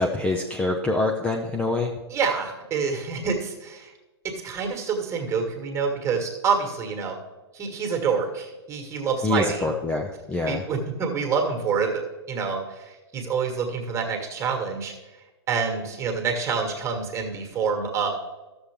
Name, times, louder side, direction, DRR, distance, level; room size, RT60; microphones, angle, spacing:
voice 1, 0.0-1.9 9.2-10.6, left 2 dB, 10° left, 1 dB, 0.6 m, -25 dB
voice 2, 2.1-3.9 4.2-7.2 7.5-9.7 10.5-12.0 12.3-14.9 15.5-18.1, right 5 dB, 20° right, 3 dB, 1.8 m, -27 dB
12.5 x 7.0 x 3.5 m, 1.1 s
figure-of-eight pair, 115°, 14 cm